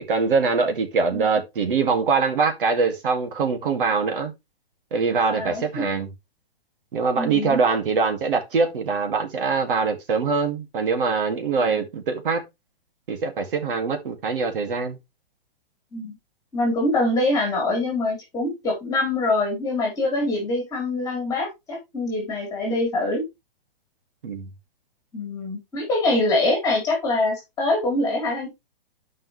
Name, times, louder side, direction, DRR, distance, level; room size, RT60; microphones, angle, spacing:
voice 1, 0.0-4.3 4.9-6.1 6.9-12.4 13.1-15.0 24.2-24.5, right 4 dB, 65° right, 2.3 m, -23 dB
voice 2, 5.3-5.9 7.1-7.6 15.9-16.1 16.5-23.2 25.1-28.5, left 2 dB, 10° left, 3.7 m, -24 dB
11.5 x 5.5 x 3.2 m
hypercardioid pair, 170°, 29 cm